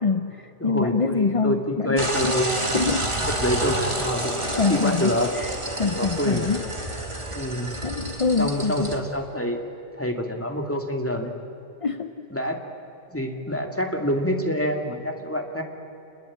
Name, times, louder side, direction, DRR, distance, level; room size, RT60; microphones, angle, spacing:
voice 1, 0.0-2.4 2.7-3.1 4.5-6.6 7.3-7.5 7.8-9.0 11.8-12.3, left 4 dB, 35° left, 9 dB, 0.6 m, -25 dB
voice 2, 0.6-2.9 3.4-5.3 6.0-6.5 7.3-7.8 8.4-9.6 10.0-11.4 12.3-12.6 13.1-15.6, equal, 10° left, 3 dB, 2.5 m, -26 dB
sound 1, 2.0-9.0, right 1 dB, 25° right, 2.0 m, -29 dB
27.0 x 21.5 x 8.7 m, 2.9 s
omnidirectional pair, 1.2 m